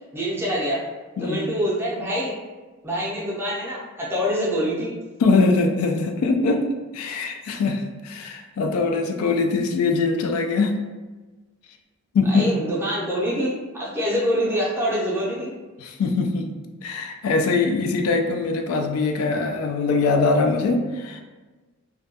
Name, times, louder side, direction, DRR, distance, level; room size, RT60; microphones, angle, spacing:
voice 1, 0.1-0.8 1.2-2.4 2.8-4.9 12.3-15.5, equal, 10° right, -6 dB, 0.5 m, -25 dB
voice 2, 1.2-1.5 5.2-6.6 6.9-10.7 12.1-12.5 15.8-16.5 16.8-21.2, left 3 dB, 80° left, 5 dB, 0.3 m, -22 dB
2.2 x 2.2 x 2.7 m, 1.2 s
head